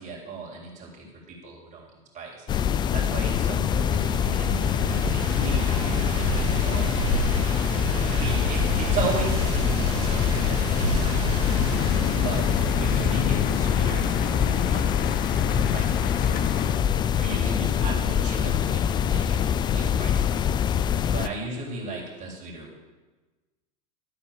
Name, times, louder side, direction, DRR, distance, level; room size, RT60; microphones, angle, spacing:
voice 1, 0.0-1.9 2.1-2.5 2.9-7.4 8.1-11.4 12.1-12.5 12.8-16.4 17.1-19.4 19.7-20.4 21.0-22.8, right 3 dB, 40° right, -3 dB, 3.3 m, -36 dB
sound 1, 2.5-21.3, left 8 dB, 25° left, 0.3 m, -24 dB
sound 2, 3.8-13.2, right 5 dB, 70° right, 1.9 m, -31 dB
sound 3, 11.5-16.8, left 7 dB, 50° left, 0.9 m, -30 dB
12.0 x 4.3 x 7.3 m, 1.2 s
hypercardioid pair, 95°, 20 cm